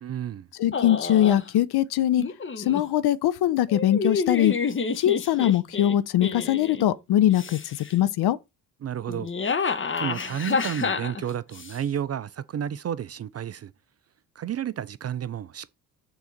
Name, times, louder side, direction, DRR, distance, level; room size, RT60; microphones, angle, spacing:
voice 1, 0.0-0.5 8.8-9.3 10.0-13.7 14.4-15.8, right 9 dB, 30° right, 0.5 m, -31 dB
voice 2, 0.6-2.2 2.7-4.5 5.0-7.6 7.9-8.4, left 12 dB, 50° left, 0.8 m, -22 dB
sound 1, 0.7-1.5 2.2-2.8 3.7-6.8 7.3-7.9 9.1-11.8, left 5 dB, 25° left, 1.1 m, -29 dB
7.0 x 3.8 x 5.8 m
hypercardioid pair, 55°, 49 cm